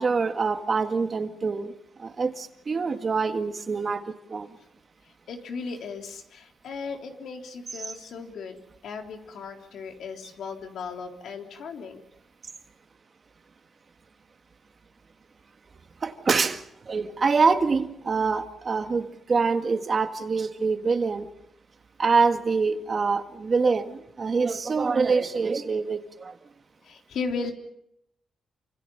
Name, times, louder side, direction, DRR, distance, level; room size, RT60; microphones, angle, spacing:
voice 1, 0.0-1.7 2.0-4.0 4.3-4.5 16.0-21.3 22.0-26.3, right 4 dB, 40° right, 1.9 m, -25 dB
voice 2, 5.3-8.6 8.8-12.0 26.8-27.5, left 5 dB, 80° left, 3.6 m, -36 dB
28.5 x 26.5 x 5.6 m
cardioid pair, 125°, 0 cm